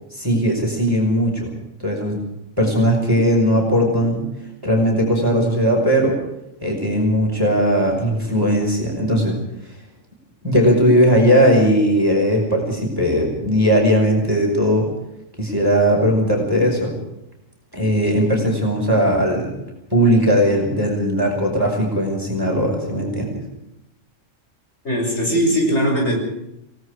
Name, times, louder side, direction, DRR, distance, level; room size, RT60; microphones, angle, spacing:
voice 1, 0.1-1.5 1.8-2.2 2.6-4.2 4.6-6.2 6.6-9.4 10.4-14.9 15.4-17.0 17.7-19.6 19.9-23.4, equal, 15° right, 0 dB, 5.5 m, -18 dB
voice 2, 24.8-26.2, equal, 65° left, 1 dB, 6.3 m, -19 dB
28.5 x 18.0 x 5.0 m, 0.85 s
omnidirectional pair, 1.3 m